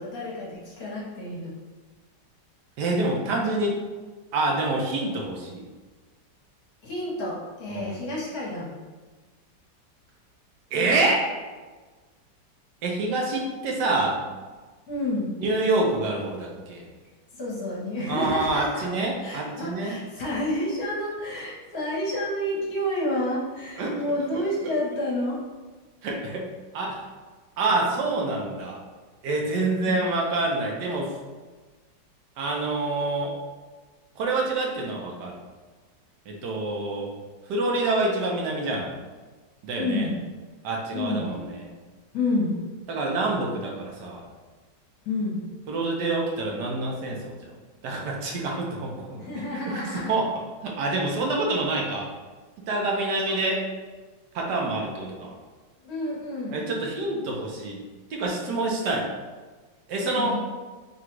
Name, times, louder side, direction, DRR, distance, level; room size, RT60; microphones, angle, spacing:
voice 1, 0.0-1.5 6.8-8.8 14.9-15.3 17.3-18.9 19.2-25.4 29.8-30.0 39.7-40.1 40.9-41.3 42.1-42.5 45.0-45.4 49.2-50.2 52.9-53.5 55.8-56.7 60.0-60.4, left 1 dB, 60° left, -5 dB, 1.4 m, -29 dB
voice 2, 2.8-3.8 4.3-5.6 7.7-7.9 10.7-11.4 12.8-14.2 15.4-16.8 18.1-19.9 23.8-24.0 26.0-26.5 26.7-27.0 27.6-28.8 29.2-31.1 32.4-33.4 34.2-35.4 36.3-37.1 37.5-38.9 39.6-40.1 40.6-41.6 42.9-44.2 45.7-47.5 47.8-49.8 50.1-50.3 50.6-52.1 52.7-53.6 54.3-55.3 56.5-57.8 58.1-59.1 59.9-60.4, right 2 dB, 75° right, -1 dB, 1.3 m, -27 dB
3.8 x 2.3 x 4.4 m, 1.3 s
omnidirectional pair, 1.9 m